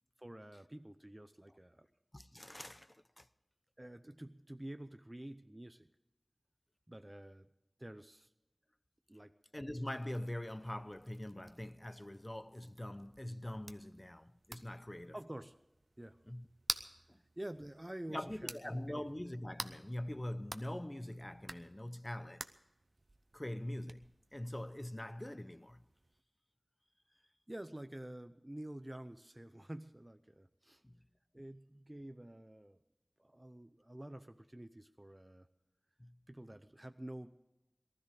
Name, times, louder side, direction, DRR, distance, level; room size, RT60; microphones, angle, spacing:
voice 1, 0.2-1.9 3.8-5.9 6.9-7.5 7.8-8.3 9.1-9.3 15.1-15.5 16.0-16.2 17.4-19.1 27.5-30.8 31.3-32.8 33.2-35.5 36.3-37.4, right 1 dB, 25° right, 0.7 m, -49 dB
voice 2, 2.1-3.3 9.5-15.1 16.3-16.5 17.1-17.2 18.1-22.5 23.3-25.8 30.8-31.0 36.0-36.2, left 1 dB, 25° left, 0.7 m, -43 dB
sound 1, 9.8-26.2, right 2 dB, 60° right, 0.8 m, -51 dB
19.0 x 13.0 x 5.0 m
wide cardioid pair, 50°, 0 cm